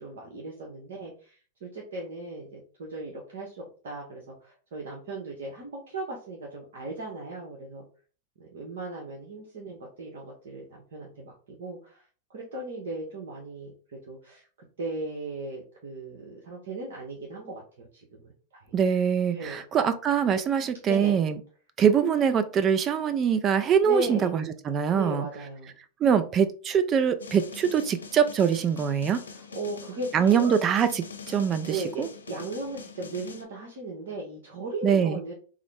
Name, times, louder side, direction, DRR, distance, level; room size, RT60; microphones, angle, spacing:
voice 1, 0.0-7.8 8.4-12.0 12.3-13.7 14.1-14.5 14.8-18.7 19.3-19.6 20.9-21.1 23.9-24.3 24.9-25.7 26.1-26.2 29.3-30.6 31.7-35.3, right 2 dB, 70° right, 1.0 m, -37 dB
voice 2, 18.7-21.4 21.8-25.3 26.0-29.2 30.1-32.1 34.8-35.2, right 7 dB, 30° right, 0.4 m, -23 dB
sound 1, 27.2-33.4, left 5 dB, 90° left, 0.6 m, -44 dB
3.6 x 2.0 x 3.4 m
hypercardioid pair, 110°, 0 cm